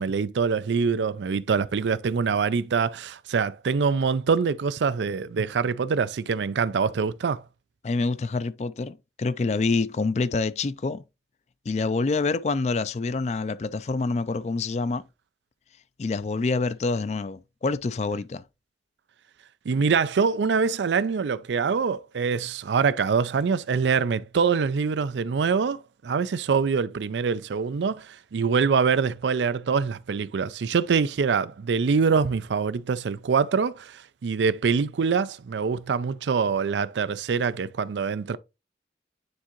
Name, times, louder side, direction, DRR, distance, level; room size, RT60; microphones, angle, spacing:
voice 1, 0.0-7.4 19.7-38.4, right 5 dB, 85° right, 0.4 m, -24 dB
voice 2, 7.8-11.0 11.7-15.0 16.0-18.4, left 3 dB, 40° left, 0.3 m, -26 dB
9.5 x 3.7 x 3.0 m
head